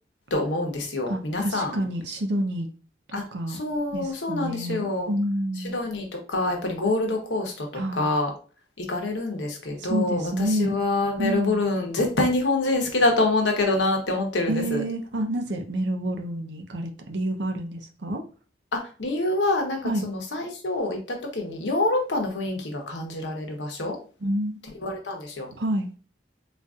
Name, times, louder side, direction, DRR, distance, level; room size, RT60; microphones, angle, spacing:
voice 1, 0.3-1.9 3.1-5.1 5.6-7.7 7.9-8.3 8.8-14.8 18.7-24.0 24.8-25.5, left 2 dB, 80° left, 2 dB, 0.9 m, -26 dB
voice 2, 1.1-2.7 3.3-3.6 3.9-5.8 7.7-8.1 9.8-10.8 11.2-11.6 14.5-18.2 19.8-20.1 24.2-24.6 25.6-25.9, right 1 dB, 75° right, 5 dB, 0.6 m, -28 dB
3.9 x 2.6 x 2.4 m, 0.38 s
head